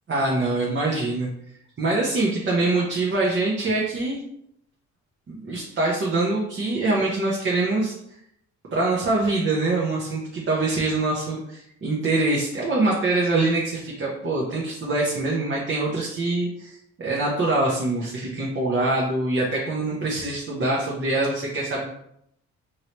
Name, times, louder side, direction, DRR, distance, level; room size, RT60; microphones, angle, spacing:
voice 1, 0.1-1.3 1.8-4.2 5.3-8.0 8.7-21.8, right 2 dB, 40° right, -4 dB, 0.8 m, -24 dB
3.1 x 2.8 x 2.8 m, 0.76 s
cardioid pair, 90°, 30 cm